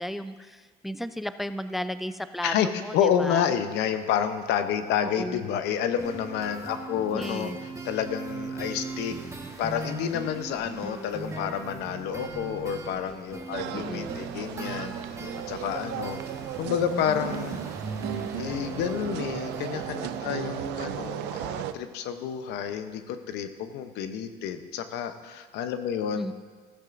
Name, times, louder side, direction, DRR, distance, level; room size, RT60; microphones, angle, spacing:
voice 1, 0.0-3.5 5.0-5.4 7.1-7.6 13.7-14.2 26.1-26.3, equal, ahead, 12 dB, 0.3 m, -34 dB
voice 2, 2.9-7.5 7.8-9.2 9.6-14.9 15.5-16.2 16.6-17.6 18.3-26.3, left 8 dB, 90° left, 8 dB, 0.8 m, -29 dB
sound 1, 6.0-20.2, right 4 dB, 20° right, 1.3 m, -39 dB
sound 2, 13.5-21.7, right 10 dB, 90° right, 0.5 m, -36 dB
15.0 x 14.0 x 2.6 m, 1.5 s
cardioid pair, 110°, 17 cm